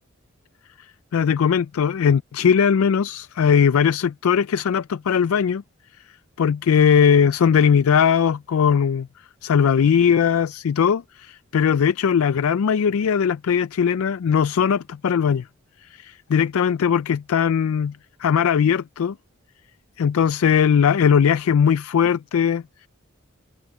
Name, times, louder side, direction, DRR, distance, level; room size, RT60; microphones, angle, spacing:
voice 1, 1.1-5.6 6.4-9.1 9.4-15.4 15.9-19.1 20.0-22.6, left 7 dB, 80° left, 0.4 m, -19 dB
head